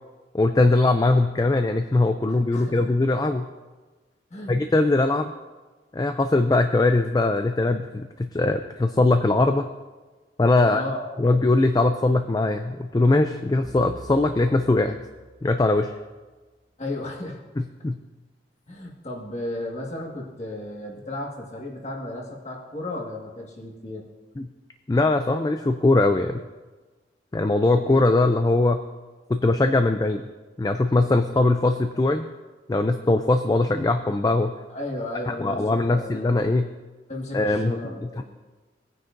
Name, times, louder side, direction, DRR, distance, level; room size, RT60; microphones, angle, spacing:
voice 1, 0.3-3.5 4.5-5.3 5.9-9.7 10.4-10.8 11.2-15.0 15.4-15.9 17.8-18.0 24.4-24.5 24.9-26.4 27.3-28.8 29.3-30.2 30.6-32.3 32.7-34.5 35.3-36.7 37.3-37.8 38.2-38.3, left 2 dB, 20° left, 7 dB, 0.3 m, -21 dB
voice 2, 2.3-2.8 4.3-4.5 10.6-11.4 16.8-17.4 18.7-24.0 27.7-28.0 34.7-36.4 37.1-38.2, left 1 dB, 35° left, -1 dB, 1.7 m, -34 dB
sound 1, 13.6-16.1, right 2 dB, 15° right, 1.3 m, -45 dB
18.5 x 9.4 x 2.6 m, 1.3 s
head